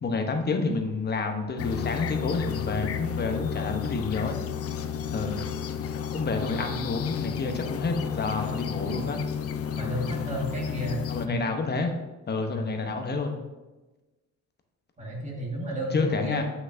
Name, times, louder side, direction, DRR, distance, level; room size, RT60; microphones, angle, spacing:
voice 1, 0.0-4.4 5.1-5.4 6.1-9.2 11.1-11.9 12.3-13.4 15.9-16.4, left 3 dB, 35° left, 4 dB, 0.8 m, -29 dB
sound 1, 1.6-11.3, left 8 dB, 50° left, 0.5 m, -32 dB
voice 2, 9.8-11.0 11.3-11.4 12.5-12.8 15.0-16.4, equal, 25° right, -3 dB, 1.7 m, -32 dB
8.1 x 5.8 x 2.6 m, 1.1 s
cardioid pair, 150°, 30 cm